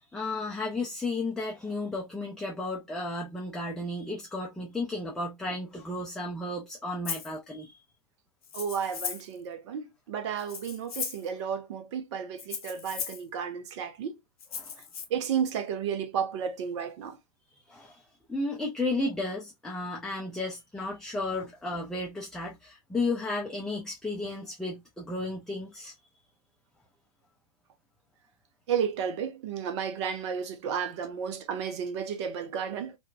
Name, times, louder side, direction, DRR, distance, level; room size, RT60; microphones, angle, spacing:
voice 1, 0.0-7.8 14.6-14.8 17.7-18.0 18.3-25.9, left 2 dB, 5° left, 0.5 m, -33 dB
Rattle (instrument), 7.0-7.3 8.4-9.3 10.4-11.3 12.4-13.2 14.4-15.0, left 7 dB, 65° left, 0.9 m, -37 dB
voice 2, 8.5-14.1 15.1-17.2 28.7-33.0, right 7 dB, 45° right, 0.7 m, -32 dB
3.7 x 2.2 x 2.4 m
figure-of-eight pair, 100°, 20 cm